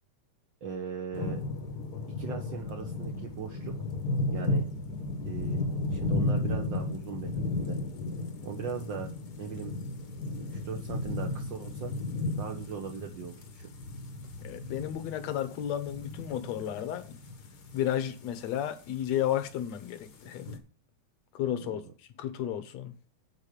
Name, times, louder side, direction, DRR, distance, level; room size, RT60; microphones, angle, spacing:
voice 1, 0.6-1.4 2.2-3.7 4.3-4.6 5.2-5.6 5.9-7.8 8.4-9.1 9.4-9.7 10.5-11.9 12.4-13.7 21.6-21.9, right 6 dB, 65° right, 1.2 m, -39 dB
sound 1, 1.1-20.6, left 2 dB, 50° left, 1.3 m, -34 dB
voice 2, 14.4-17.1 17.7-20.5 21.3-21.8 22.2-23.0, left 11 dB, 70° left, 2.1 m, -32 dB
9.1 x 4.6 x 6.6 m
omnidirectional pair, 3.3 m